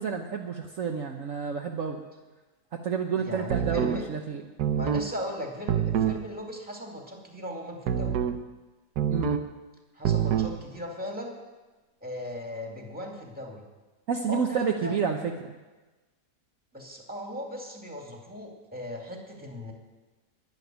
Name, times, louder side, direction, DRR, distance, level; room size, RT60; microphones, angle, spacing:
voice 1, 0.0-2.0 2.8-4.4 9.1-9.4 14.1-15.5, right 6 dB, 55° right, 2 dB, 1.2 m, -29 dB
voice 2, 3.2-4.1 4.7-8.2 9.9-11.3 12.0-13.6 14.3-15.0 16.7-19.7, left 1 dB, 5° right, 1 dB, 2.4 m, -38 dB
sound 1, 3.5-4.0 4.6-5.1 5.7-6.2 7.9-8.4 9.0-9.5 10.0-10.6, right 8 dB, 75° right, 1.4 m, -26 dB
12.0 x 11.0 x 9.3 m, 1.2 s
omnidirectional pair, 1.7 m